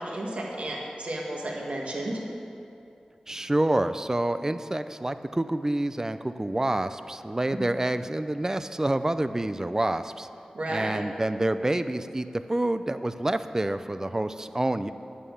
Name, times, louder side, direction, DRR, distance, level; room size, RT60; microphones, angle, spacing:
voice 1, 0.0-2.2 10.5-11.0, right 1 dB, 65° right, -2 dB, 1.9 m, -32 dB
voice 2, 3.3-10.3 10.7-14.9, right 1 dB, 25° right, 11 dB, 0.5 m, -27 dB
9.4 x 8.4 x 7.2 m, 2.7 s
wide cardioid pair, 65°, 2 cm